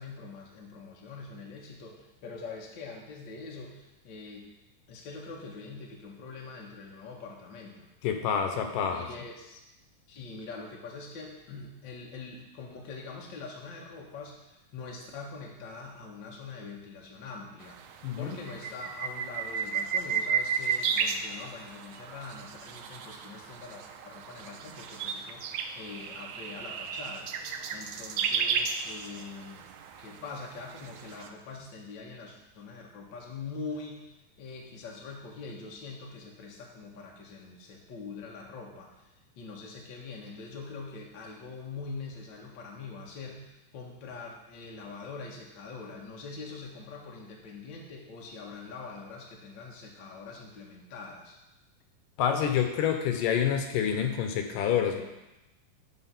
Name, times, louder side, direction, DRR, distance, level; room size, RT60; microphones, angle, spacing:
voice 1, 0.0-4.5 4.9-7.9 8.9-9.6 10.1-29.7 30.0-51.4, left 4 dB, 45° left, -1 dB, 1.6 m, -44 dB
voice 2, 8.0-9.1 18.0-18.4 52.2-55.0, left 8 dB, 75° left, 5 dB, 2.4 m, -27 dB
sound 1, 17.6-31.3, right 6 dB, 80° right, 1.9 m, -34 dB
12.5 x 4.4 x 5.8 m, 0.98 s
omnidirectional pair, 3.9 m